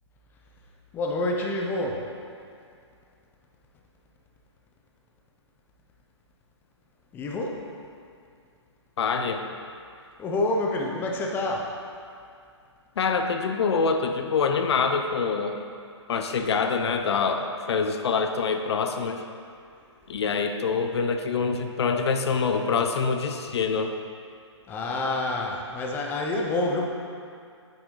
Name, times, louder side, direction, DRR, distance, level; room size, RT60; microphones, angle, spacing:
voice 1, 0.9-2.1 7.1-7.6 10.2-11.8 20.1-20.2 24.7-26.9, left 2 dB, 15° left, 0 dB, 0.6 m, -28 dB
voice 2, 9.0-9.4 13.0-15.6 16.1-19.2 20.1-23.9, left 5 dB, 60° left, 6 dB, 0.6 m, -25 dB
8.5 x 5.9 x 3.9 m, 2.3 s
hypercardioid pair, 145°, 15 cm